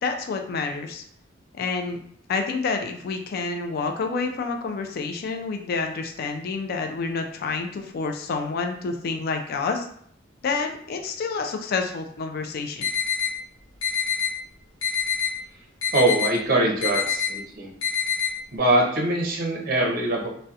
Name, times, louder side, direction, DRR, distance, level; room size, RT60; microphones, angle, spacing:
voice 1, 0.0-1.0 1.5-2.0 2.3-9.9 10.4-12.9, left 4 dB, 50° left, 4 dB, 0.3 m, -28 dB
sound 1, 12.8-13.3 13.8-14.3 14.8-15.3 15.8-16.3 16.8-17.3 17.8-18.3, left 8 dB, 80° left, 0.8 m, -25 dB
voice 2, 15.9-17.7 18.5-20.3, right 1 dB, 50° right, 0 dB, 0.5 m, -23 dB
2.7 x 2.0 x 2.3 m, 0.62 s
head